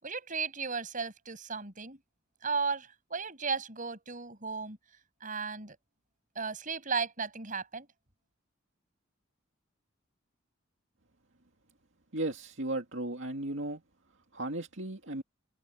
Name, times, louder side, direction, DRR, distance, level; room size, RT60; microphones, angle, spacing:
voice 1, 0.0-2.0 2.4-4.8 5.2-5.8 6.4-7.9, right 5 dB, 40° right, 7.5 m, -35 dB
voice 2, 12.1-13.8 14.3-15.2, right 2 dB, 65° right, 2.4 m, -35 dB
head